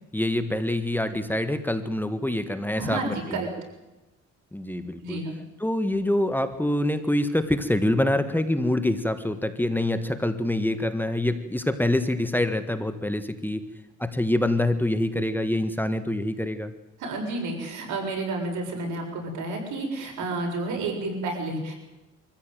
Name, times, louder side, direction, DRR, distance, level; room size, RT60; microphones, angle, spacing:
voice 1, 0.1-3.4 4.5-5.2 5.6-13.7 14.0-16.7, left 1 dB, 5° left, 9 dB, 1.7 m, -25 dB
voice 2, 2.8-3.5 5.0-5.3 17.0-21.8, right 2 dB, 80° right, 2 dB, 7.2 m, -30 dB
24.5 x 15.0 x 9.2 m, 1.0 s
cardioid pair, 90°, 30 cm